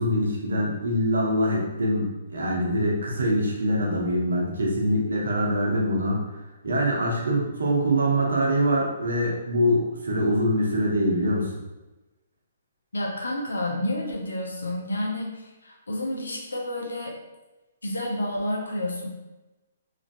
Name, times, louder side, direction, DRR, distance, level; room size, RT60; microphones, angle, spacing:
voice 1, 0.0-6.2 6.6-11.5, equal, 80° right, -2 dB, 0.9 m, -24 dB
voice 2, 12.9-17.1 17.8-19.1, left 1 dB, 85° left, -1 dB, 0.7 m, -30 dB
3.1 x 2.6 x 2.5 m, 1.1 s
hypercardioid pair, 130°, 0 cm